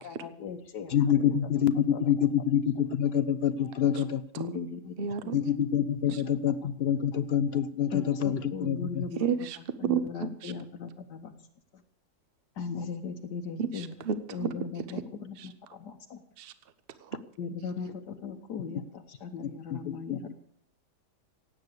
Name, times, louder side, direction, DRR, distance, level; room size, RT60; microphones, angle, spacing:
voice 1, 0.0-1.3 1.9-2.2 4.3-5.3 6.1-6.2 6.5-6.7 7.1-7.2 7.9-9.3 9.8-11.3 12.6-13.9 14.3-16.2 17.4-20.3, left 5 dB, 80° left, 4 dB, 1.7 m, -39 dB
voice 2, 0.9-4.2 5.3-9.0 19.7-19.8 20.1-20.2, left 9 dB, 60° left, 14 dB, 0.6 m, -26 dB
voice 3, 5.0-5.4 6.1-6.2 9.2-10.5 13.6-14.5 15.4-15.5 16.4-16.5 17.0-17.2, right 7 dB, 40° right, 12 dB, 1.0 m, -32 dB
17.5 x 8.8 x 6.6 m, 0.69 s
omnidirectional pair, 1.8 m